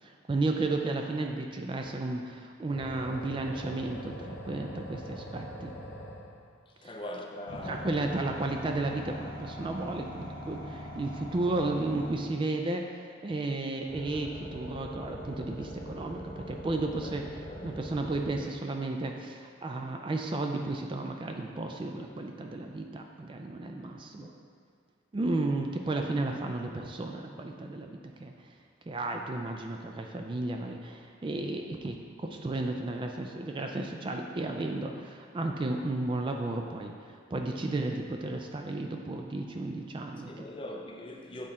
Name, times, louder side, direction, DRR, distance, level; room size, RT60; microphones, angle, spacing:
voice 1, 0.0-5.7 6.8-7.0 7.6-17.2 17.6-24.3 25.1-28.5 28.9-40.5, right 2 dB, 25° right, 0.3 m, -33 dB
sound 1, 2.7-6.5 7.5-12.5 13.9-18.4, equal, 55° left, 1.0 m, -42 dB
voice 2, 6.7-7.9 16.9-17.1 17.5-17.8 24.1-24.4 40.2-41.5, left 1 dB, 25° left, 0.5 m, -42 dB
7.5 x 4.2 x 3.7 m
head